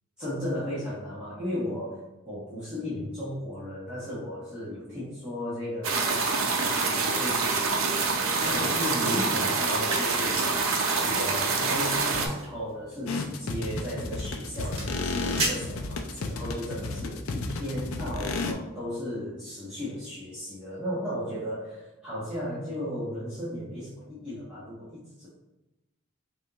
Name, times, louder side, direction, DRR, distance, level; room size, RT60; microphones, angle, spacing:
voice 1, 0.2-25.3, equal, 5° right, -13 dB, 1.3 m, -35 dB
sound 1, 5.8-12.3, right 4 dB, 75° right, 0.7 m, -26 dB
sound 2, 9.4-16.5, right 2 dB, 30° right, 1.3 m, -38 dB
sound 3, 13.1-18.5, left 3 dB, 85° left, 0.5 m, -32 dB
5.4 x 2.5 x 3.1 m, 1.0 s
head